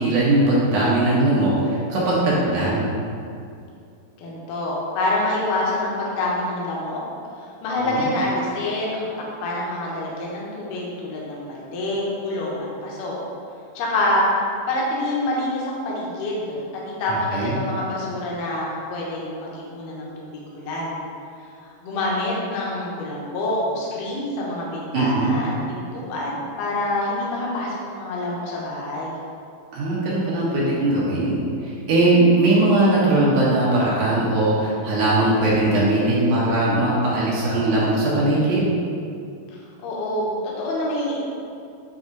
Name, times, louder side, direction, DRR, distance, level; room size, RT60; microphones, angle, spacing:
voice 1, 0.0-2.9 7.8-8.1 17.3-17.6 24.9-25.4 29.7-31.4 31.6-38.7, right 2 dB, 60° right, -7 dB, 2.6 m, -20 dB
voice 2, 4.2-7.0 7.4-9.1 9.4-13.2 13.7-14.4 14.7-21.0 21.6-29.2 39.8-41.2, left 1 dB, 70° left, -4 dB, 2.5 m, -26 dB
8.7 x 3.5 x 3.9 m, 2.5 s
omnidirectional pair, 4.2 m